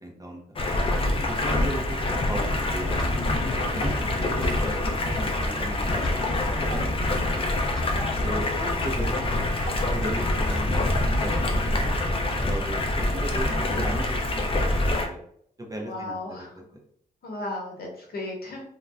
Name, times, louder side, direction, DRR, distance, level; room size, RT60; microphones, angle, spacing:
voice 1, 0.0-0.4 1.1-3.0 3.5-7.5 8.2-12.1 12.5-14.2 14.5-15.2 15.7-16.5, equal, 20° right, 0 dB, 0.6 m, -37 dB
Stream, 0.6-15.1, left 1 dB, 30° left, 0.4 m, -25 dB
sound 1, 0.8-14.3, equal, 5° left, 0.9 m, -40 dB
voice 2, 7.9-9.2 9.8-10.0 15.8-16.6 17.2-18.7, left 2 dB, 65° left, -1 dB, 0.9 m, -36 dB
2.5 x 2.2 x 3.2 m, 0.67 s
wide cardioid pair, 115°, 17 cm